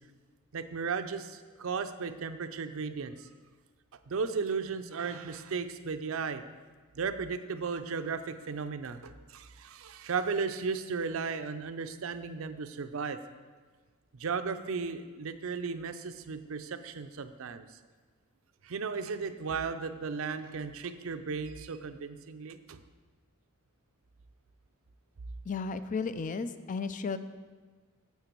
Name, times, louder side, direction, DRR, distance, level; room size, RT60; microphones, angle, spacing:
voice 1, 0.5-3.3 4.1-6.4 6.9-13.2 14.1-17.7 18.6-22.8, right 5 dB, 65° right, 10 dB, 0.5 m, -35 dB
voice 2, 25.5-27.2, left 4 dB, 35° left, 12 dB, 0.4 m, -34 dB
9.1 x 7.4 x 4.5 m, 1.4 s
head